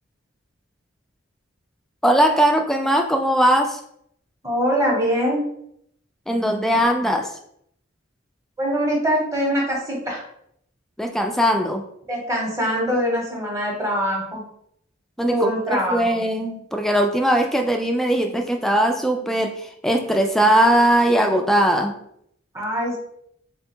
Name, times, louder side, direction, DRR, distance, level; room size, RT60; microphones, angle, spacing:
voice 1, 2.0-3.8 6.3-7.3 11.0-11.8 15.2-22.0, right 1 dB, ahead, 4 dB, 0.3 m, -20 dB
voice 2, 4.4-5.4 8.6-10.2 12.1-14.4 15.3-16.2 22.5-23.0, equal, 15° right, -2 dB, 0.9 m, -23 dB
3.6 x 2.2 x 4.3 m, 0.71 s
head